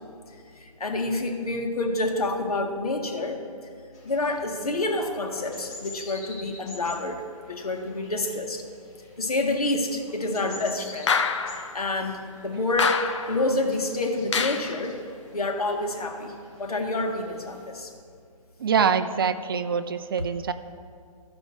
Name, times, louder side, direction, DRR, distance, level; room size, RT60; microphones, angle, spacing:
voice 1, 0.5-3.4 4.0-7.2 7.5-8.7 9.2-11.1 11.7-13.0 13.3-17.9, left 2 dB, 90° left, 3 dB, 1.7 m, -28 dB
sound 1, 3.9-17.7, left 2 dB, 30° left, 2.2 m, -48 dB
sound 2, 11.1-11.7 12.8-13.4 14.3-14.8, left 5 dB, 50° left, 0.8 m, -26 dB
voice 2, 18.6-20.5, right 6 dB, 40° right, 11 dB, 0.5 m, -24 dB
15.0 x 5.3 x 6.2 m, 2.3 s
hypercardioid pair, 165°, 19 cm